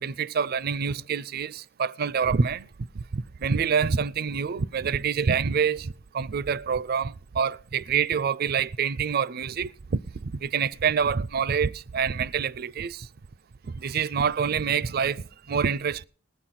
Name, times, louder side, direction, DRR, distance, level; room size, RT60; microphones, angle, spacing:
voice 1, 0.0-2.7 3.0-13.1 13.7-16.0, right 6 dB, 55° right, 0.4 m, -26 dB
19.5 x 7.7 x 4.2 m
head